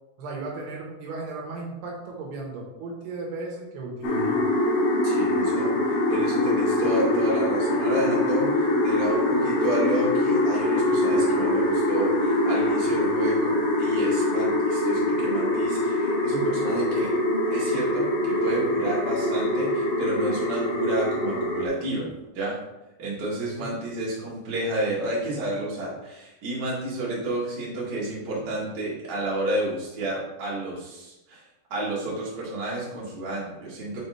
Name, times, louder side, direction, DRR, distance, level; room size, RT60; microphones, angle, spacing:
voice 1, 0.2-4.5 23.4-23.8, right 3 dB, 75° right, -2 dB, 3.3 m, -36 dB
sound 1, 4.0-21.7, left 1 dB, 60° left, 2.5 m, -23 dB
voice 2, 5.0-5.7 6.1-17.2 17.5-22.1 22.3-22.5 23.0-31.4 31.7-34.0, right 1 dB, 40° right, -6 dB, 1.6 m, -31 dB
sound 2, 11.4-20.3, right 1 dB, 85° left, 3.2 m, -44 dB
6.9 x 5.2 x 3.3 m, 0.98 s
omnidirectional pair, 4.9 m